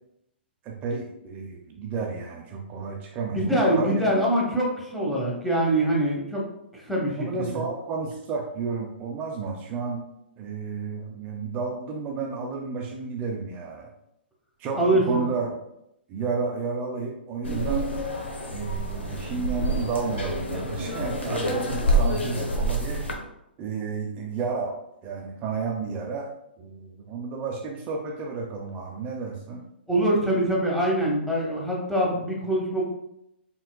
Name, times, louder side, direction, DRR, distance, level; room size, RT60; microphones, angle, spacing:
voice 1, 0.6-4.2 7.1-10.0 10.4-13.9 14.6-15.5 16.1-17.9 18.5-23.1 23.6-24.8 25.0-26.3 26.6-29.6, right 5 dB, 25° right, 1 dB, 0.6 m, -31 dB
voice 2, 3.3-6.5 6.7-7.6 14.8-15.1 29.9-32.8, right 1 dB, ahead, -4 dB, 1.0 m, -24 dB
sound 1, 17.4-23.1, right 1 dB, 80° left, 0.8 m, -27 dB
4.2 x 3.8 x 2.2 m, 0.80 s
figure-of-eight pair, 125°, 6 cm